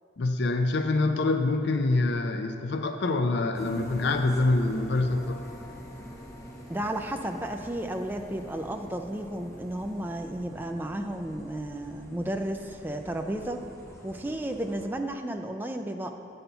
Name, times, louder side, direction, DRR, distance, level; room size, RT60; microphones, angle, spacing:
voice 1, 0.2-5.4, left 2 dB, 60° left, 7 dB, 0.4 m, -25 dB
sound 1, 3.5-14.9, equal, 15° left, 0.8 m, -44 dB
voice 2, 6.7-13.6 14.0-16.1, right 1 dB, 10° right, 4 dB, 0.3 m, -33 dB
8.9 x 4.3 x 6.8 m, 2.5 s
head